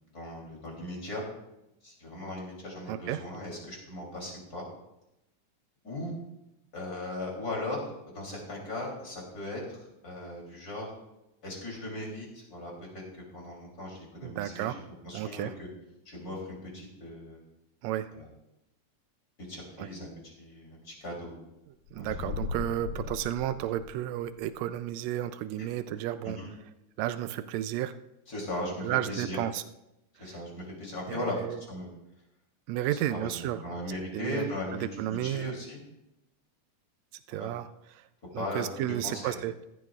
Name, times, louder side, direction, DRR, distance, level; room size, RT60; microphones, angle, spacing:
voice 1, 0.1-1.2 1.8-4.6 5.8-6.1 6.7-7.8 8.1-10.9 11.4-12.7 13.3-14.8 15.0-15.5 16.1-17.4 18.1-18.3 19.5-21.4 21.9-22.1 26.2-26.5 28.3-29.4 30.2-31.4 31.7-31.9 32.9-35.8 37.3-37.5 38.4-39.4, left 1 dB, 30° left, -2 dB, 3.5 m, -38 dB
voice 2, 2.9-3.2 14.2-14.8 15.1-15.5 17.8-18.1 19.8-19.9 21.9-26.4 27.0-27.9 28.8-29.6 30.2-30.4 31.1-31.6 32.7-33.6 34.1-35.5 37.3-38.0 38.3-39.6, right 12 dB, 90° right, 11 dB, 1.5 m, -32 dB
sound 1, 21.9-24.3, left 4 dB, 85° left, 2.4 m, -37 dB
15.0 x 13.0 x 2.4 m, 0.90 s
omnidirectional pair, 3.6 m